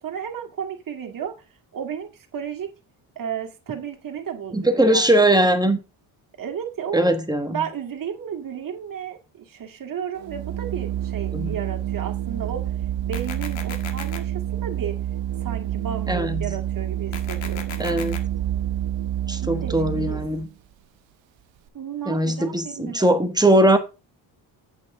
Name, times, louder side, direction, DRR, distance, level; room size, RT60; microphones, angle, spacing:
voice 1, 0.0-1.5 1.7-2.7 3.2-5.3 6.4-7.1 7.5-12.7 13.0-15.0 15.4-18.1 19.4-20.2 21.7-23.2, right 8 dB, 45° right, 2.0 m, -33 dB
voice 2, 4.5-5.8 6.9-7.6 11.3-11.5 16.1-16.5 17.8-18.2 19.3-20.5 22.1-23.8, right 1 dB, 10° right, 1.1 m, -20 dB
Organ, 10.2-20.5, right 11 dB, 75° right, 0.7 m, -28 dB
sound 1, 13.1-14.2 17.1-18.2, left 6 dB, 75° left, 1.8 m, -36 dB
8.3 x 8.2 x 3.6 m
cardioid pair, 110°, 46 cm